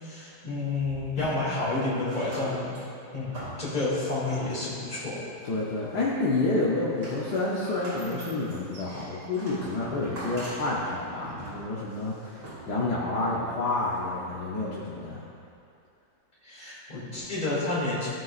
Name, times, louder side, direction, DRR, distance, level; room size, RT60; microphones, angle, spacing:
voice 1, 0.0-2.8 3.1-5.2 16.4-18.1, left 2 dB, 25° left, -8 dB, 2.4 m, -30 dB
sound 1, 0.7-1.6 2.0-4.8 5.4-6.2 6.5-13.0 13.8-13.9, right 1 dB, 85° right, 3.1 m, -43 dB
voice 2, 5.4-15.2, left 2 dB, 65° left, -6 dB, 1.4 m, -29 dB
15.5 x 6.2 x 2.4 m, 2.5 s
omnidirectional pair, 2.0 m